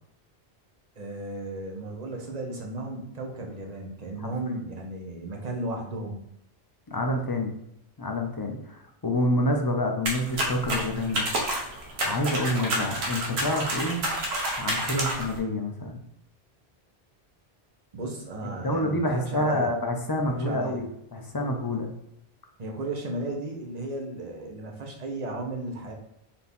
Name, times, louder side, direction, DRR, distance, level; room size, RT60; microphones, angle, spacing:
voice 1, 1.0-6.2 17.9-19.7 20.3-20.8 22.6-25.9, right 2 dB, 45° right, 1 dB, 0.8 m, -35 dB
voice 2, 6.9-7.5 8.0-11.3 12.0-14.0 14.6-16.0 18.6-21.9, left 1 dB, 35° left, 3 dB, 0.4 m, -28 dB
sound 1, 10.1-15.4, right 1 dB, 80° right, 1.2 m, -29 dB
4.2 x 2.8 x 3.5 m, 0.80 s
omnidirectional pair, 1.1 m